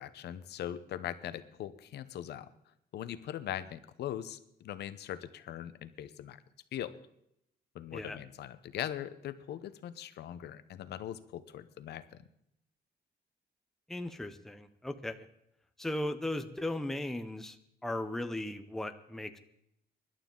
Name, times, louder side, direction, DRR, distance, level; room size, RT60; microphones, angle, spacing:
voice 1, 0.0-2.5 2.9-6.4 6.7-7.0 7.7-12.0, left 11 dB, 75° left, 13 dB, 0.9 m, -41 dB
voice 2, 13.9-15.3 15.8-17.6 17.8-19.4, left 1 dB, ahead, 7 dB, 0.7 m, -37 dB
24.5 x 11.5 x 3.9 m, 0.78 s
cardioid pair, 180°, 17 cm